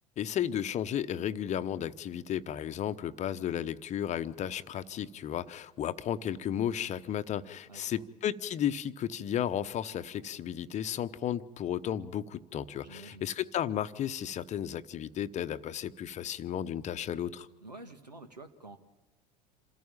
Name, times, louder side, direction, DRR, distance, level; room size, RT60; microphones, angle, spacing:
voice 1, 0.2-17.5, left 10 dB, 35° left, 13 dB, 0.9 m, -34 dB
voice 2, 7.6-8.1 12.8-13.3 17.6-18.8, right 2 dB, 90° right, 7 dB, 1.6 m, -49 dB
27.5 x 14.0 x 8.9 m, 1.1 s
figure-of-eight pair, 75°, 21 cm